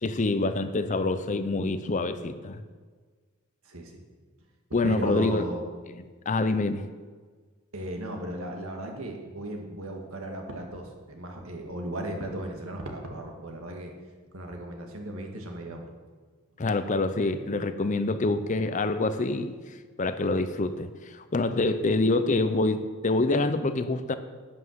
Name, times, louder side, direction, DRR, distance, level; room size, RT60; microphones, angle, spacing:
voice 1, 0.0-2.6 4.7-5.4 6.3-6.8 16.6-19.6 20.0-24.2, left 2 dB, 35° left, 11 dB, 0.5 m, -26 dB
voice 2, 3.6-4.0 4.8-5.6 7.7-13.9 14.3-15.9, right 1 dB, 70° right, 2 dB, 1.8 m, -36 dB
11.0 x 5.8 x 7.9 m, 1.5 s
head